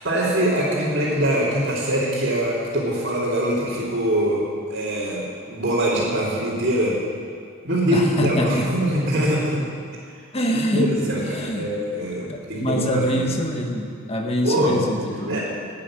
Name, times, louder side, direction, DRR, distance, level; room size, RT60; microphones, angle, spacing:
voice 1, 0.0-7.0 7.6-9.6 10.5-13.3 14.4-14.9 15.3-15.4, right 1 dB, 55° right, -10 dB, 2.9 m, -23 dB
voice 2, 7.9-8.7 10.3-11.7 12.3-15.4, equal, 30° left, 2 dB, 1.5 m, -25 dB
12.5 x 8.8 x 9.8 m, 2.3 s
head